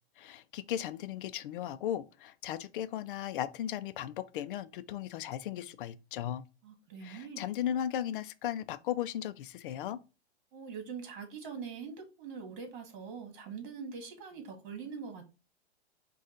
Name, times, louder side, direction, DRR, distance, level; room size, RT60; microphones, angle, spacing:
voice 1, 0.2-6.4 7.0-10.0, left 11 dB, 50° left, 0.5 m, -36 dB
voice 2, 6.6-7.4 10.5-15.4, right 6 dB, 50° right, 1.7 m, -43 dB
5.1 x 2.4 x 3.7 m
hypercardioid pair, 130°, 33 cm